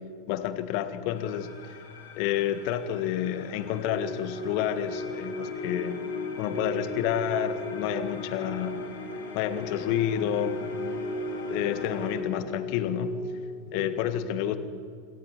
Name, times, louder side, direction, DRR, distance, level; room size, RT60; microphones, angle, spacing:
voice 1, 0.3-1.5 2.1-6.0 6.4-8.8 9.3-10.9 11.5-13.2 13.7-14.6, left 10 dB, 45° left, 11 dB, 1.7 m, -29 dB
sound 1, 1.1-12.2, left 4 dB, 65° left, 4.1 m, -41 dB
sound 2, 3.8-14.0, left 1 dB, 25° left, 7.9 m, -37 dB
27.5 x 25.0 x 4.7 m, 2.4 s
figure-of-eight pair, 90°, 0 cm